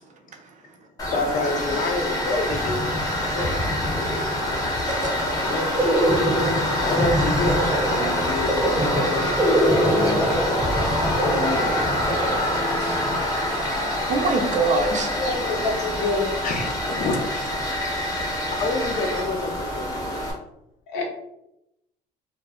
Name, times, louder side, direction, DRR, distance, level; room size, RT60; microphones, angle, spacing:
Tools, 1.0-20.3, left 1 dB, 20° left, 0.8 m, -26 dB
voice 1, 1.1-2.9 3.3-3.5 5.4-5.7 6.8-10.5 11.1-11.9 16.4-20.2, left 2 dB, 55° left, 0.6 m, -29 dB
sound 1, 2.5-13.1, equal, 10° right, 0.8 m, -26 dB
voice 2, 4.9-5.3 12.8-15.2 18.2-18.3, right 3 dB, 45° right, 0.5 m, -27 dB
voice 3, 15.2-16.3 20.9-21.0, left 3 dB, 85° left, 0.8 m, -26 dB
2.3 x 2.1 x 3.4 m
cardioid pair, 110°, 17 cm